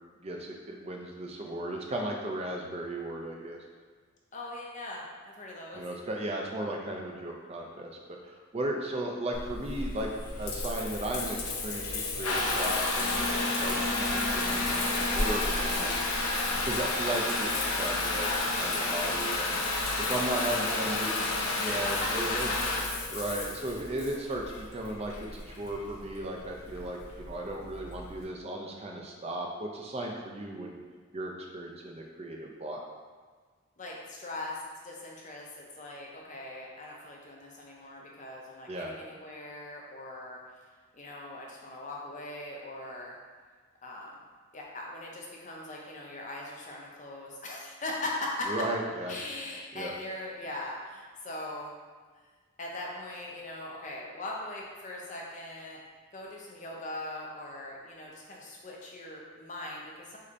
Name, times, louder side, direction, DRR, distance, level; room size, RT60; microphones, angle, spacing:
voice 1, 0.2-3.6 5.7-10.1 10.4-16.0 16.6-18.3 18.6-19.6 20.0-21.1 21.6-22.7 23.1-30.8 31.1-32.8 38.7-38.9 48.5-49.1 49.7-49.9, right 1 dB, 30° right, 0 dB, 0.5 m, -36 dB
voice 2, 4.3-5.8 18.1-18.4 20.3-21.9 33.8-34.6 34.8-40.4 40.9-43.2 43.8-44.2 44.5-48.6 49.1-51.7 52.6-55.8 56.1-60.2, left 2 dB, 35° left, -2 dB, 0.6 m, -40 dB
Water tap faucet / Bathtub (filling or washing) / Trickle dribble, 9.3-28.2, left 2 dB, 85° left, 0.6 m, -31 dB
6.4 x 2.8 x 2.6 m, 1.5 s
head